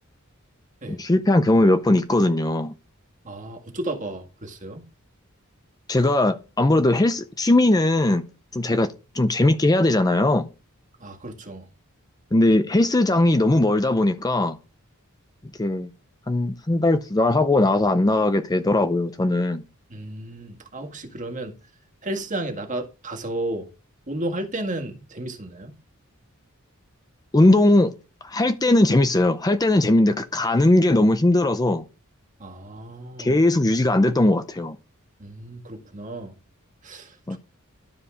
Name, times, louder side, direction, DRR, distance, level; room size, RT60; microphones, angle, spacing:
voice 1, 0.9-2.7 5.9-8.2 8.5-10.5 12.3-14.6 15.6-15.9 16.3-19.6 27.3-27.9 28.2-31.8 33.2-34.8 37.3-37.4, left 1 dB, 20° left, 0.5 m, -19 dB
voice 2, 3.2-4.8 11.0-11.6 19.9-21.6 22.0-23.7 24.1-25.8 32.4-33.4 35.2-36.3 36.8-37.4, right 1 dB, 35° right, 1.9 m, -33 dB
12.5 x 5.0 x 5.0 m
head